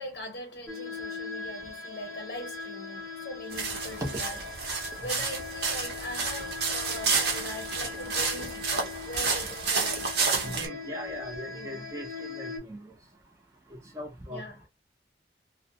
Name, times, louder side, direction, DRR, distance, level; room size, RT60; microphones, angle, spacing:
voice 1, 0.0-4.4 4.7-10.6 11.5-11.9 14.3-14.6, left 1 dB, 60° left, 0.6 m, -41 dB
sound 1, 0.7-12.6, left 4 dB, 15° left, 0.9 m, -40 dB
sound 2, 3.5-10.7, right 5 dB, 70° right, 0.8 m, -30 dB
voice 2, 10.4-12.9 13.9-14.4, equal, 15° right, 0.7 m, -38 dB
2.5 x 2.1 x 2.7 m
head